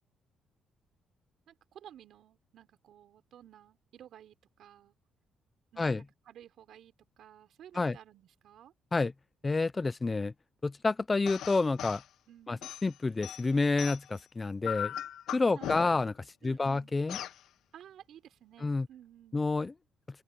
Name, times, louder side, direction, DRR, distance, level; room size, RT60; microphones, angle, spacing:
voice 1, 1.5-5.0 5.7-8.7 12.3-12.7 15.5-16.0 16.4-17.0 17.7-19.5, right 10 dB, 70° right, 5.3 m, -54 dB
voice 2, 9.4-10.3 10.6-12.0 12.5-15.0 15.3-16.1 16.4-17.2 18.6-18.9 19.3-19.7, left 3 dB, 25° left, 0.7 m, -29 dB
sound 1, 11.3-12.1 12.6-14.2 14.6-16.1 17.1-17.4, left 11 dB, 80° left, 0.9 m, -39 dB
open air
cardioid pair, 90°, 0 cm